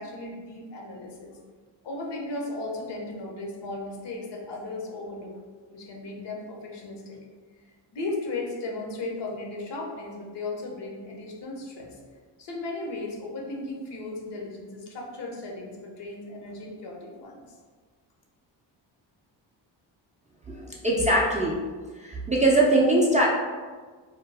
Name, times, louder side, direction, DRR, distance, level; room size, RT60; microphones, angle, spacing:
voice 1, 0.0-1.4 1.8-5.3 5.7-7.2 7.9-12.0 12.4-17.4, left 2 dB, 60° left, -1 dB, 0.7 m, -36 dB
voice 2, 20.5-21.6 22.0-23.3, right 1 dB, 15° right, -4 dB, 0.3 m, -22 dB
2.2 x 2.0 x 3.3 m, 1.5 s
cardioid pair, 65°, 46 cm